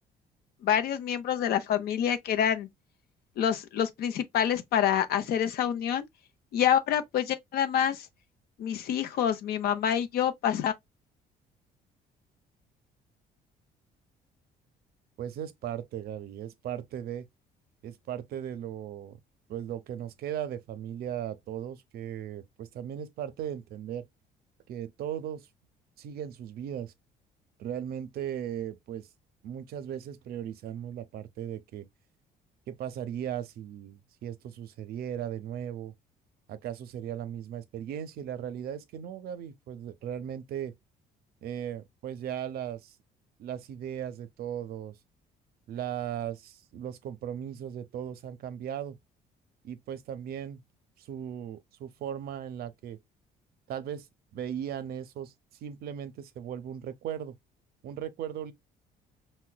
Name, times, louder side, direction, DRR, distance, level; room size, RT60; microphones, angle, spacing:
voice 1, 0.6-2.7 3.4-6.0 6.5-8.1 8.6-10.7, left 9 dB, 65° left, 0.6 m, -27 dB
voice 2, 15.2-17.3 17.8-19.2 19.5-24.1 24.7-25.5 26.0-26.9 27.6-29.1 29.4-31.9 32.7-35.9 36.5-40.7 41.4-43.0 43.4-44.9 45.7-49.0 49.6-50.6 51.0-53.0 53.7-54.1 54.3-55.3 55.6-57.4 57.8-58.5, right 10 dB, 65° right, 0.6 m, -37 dB
5.7 x 2.2 x 2.2 m
cardioid pair, 110°, 17 cm